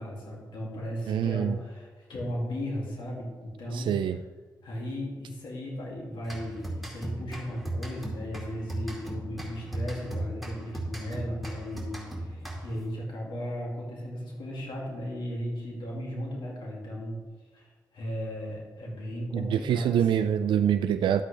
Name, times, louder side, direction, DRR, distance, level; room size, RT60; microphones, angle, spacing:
voice 1, 0.0-3.9 4.6-17.2 17.5-20.0, equal, 85° left, -3 dB, 2.5 m, -36 dB
voice 2, 1.1-1.6 3.7-4.2 19.3-21.2, right 9 dB, 90° right, 10 dB, 0.4 m, -25 dB
sound 1, 6.2-12.9, right 1 dB, ahead, 2.4 m, -37 dB
11.5 x 8.3 x 3.4 m, 1.4 s
cardioid pair, 80°, 8 cm